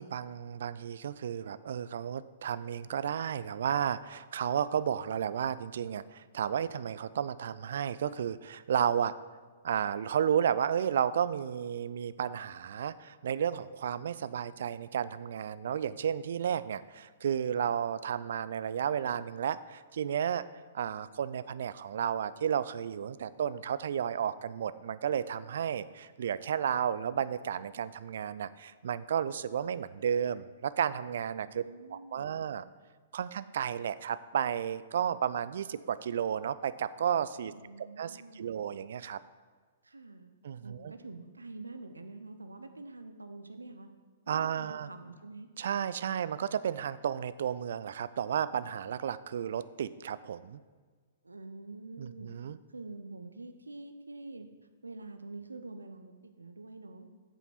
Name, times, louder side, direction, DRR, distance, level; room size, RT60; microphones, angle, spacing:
voice 1, 0.0-9.1 9.6-20.4 20.7-31.6 31.9-32.6 33.1-37.5 37.8-39.2 40.4-40.9 44.3-44.9 45.6-50.6 52.0-52.6, right 8 dB, 55° right, 15 dB, 0.3 m, -32 dB
voice 2, 31.4-32.5 37.5-38.6 39.8-40.3 40.6-43.9 44.3-45.5 51.2-52.3 52.7-54.5 54.8-57.1, right 3 dB, 75° right, 8 dB, 0.7 m, -46 dB
8.4 x 7.2 x 4.3 m, 1.5 s
figure-of-eight pair, 115°, 0 cm